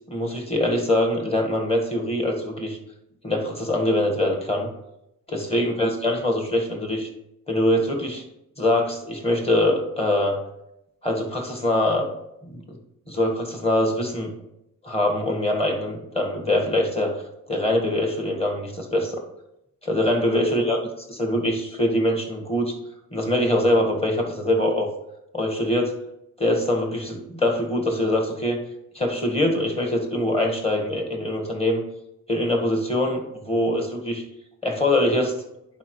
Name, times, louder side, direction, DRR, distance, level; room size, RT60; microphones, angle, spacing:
voice 1, 0.1-2.8 3.2-4.7 5.3-7.1 7.5-8.2 8.6-10.4 11.0-12.0 12.4-12.8 13.1-14.3 14.8-17.1 17.5-19.2 19.8-20.8 21.1-22.7 23.1-24.9 25.3-25.9 26.4-28.6 28.9-31.8 32.3-34.2 34.6-35.4, left 1 dB, 15° left, 2 dB, 1.5 m, -23 dB
10.5 x 4.4 x 3.1 m, 0.84 s
cardioid pair, 80°, 34 cm